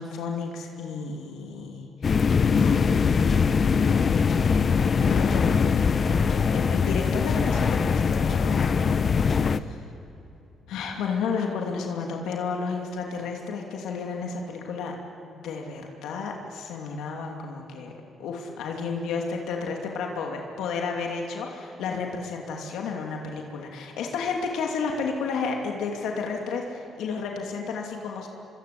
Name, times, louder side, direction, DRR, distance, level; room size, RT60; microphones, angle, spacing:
voice 1, 0.0-2.8 4.3-9.8 10.7-15.0 15.3-17.9 18.2-28.3, left 5 dB, 85° left, 1 dB, 2.8 m, -32 dB
sound 1, 2.0-9.6, left 5 dB, 45° left, 0.9 m, -22 dB
24.5 x 24.5 x 8.5 m, 2.8 s
cardioid pair, 90°, 0 cm